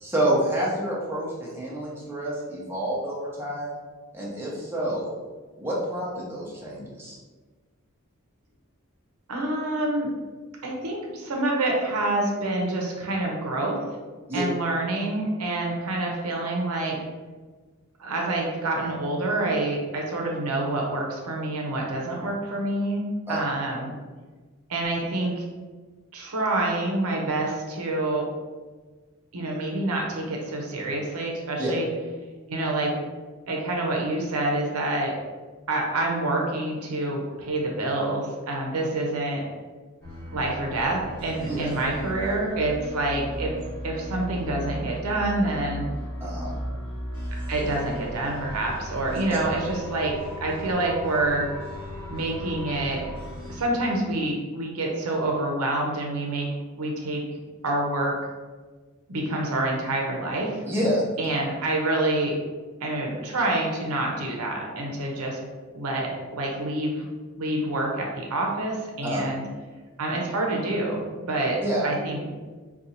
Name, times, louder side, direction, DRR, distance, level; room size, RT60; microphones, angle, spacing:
voice 1, 0.0-3.8 4.1-5.1 5.6-7.2 14.3-14.4 23.3-23.4 31.6-31.7 41.5-41.7 46.2-46.5 49.1-49.4 60.6-61.3 69.0-69.2 71.6-71.9, right 1 dB, 10° right, -6 dB, 0.7 m, -28 dB
voice 2, 9.3-10.1 10.6-13.8 14.3-17.0 18.0-23.0 23.3-23.9 24.7-25.4 26.1-28.3 29.3-31.9 32.5-33.0 33.5-35.1 35.7-39.4 40.3-43.5 43.8-45.8 47.5-50.1 50.4-51.5 52.1-53.0 53.5-56.5 56.8-57.2 57.6-58.1 59.1-60.6 61.2-62.3 62.8-65.4 65.7-67.1 67.4-69.4 70.0-71.6 71.8-72.3, right 2 dB, 80° right, -1 dB, 0.7 m, -27 dB
sound 1, 40.0-53.6, equal, 15° left, 1.2 m, -36 dB
2.6 x 2.3 x 4.1 m, 1.4 s
head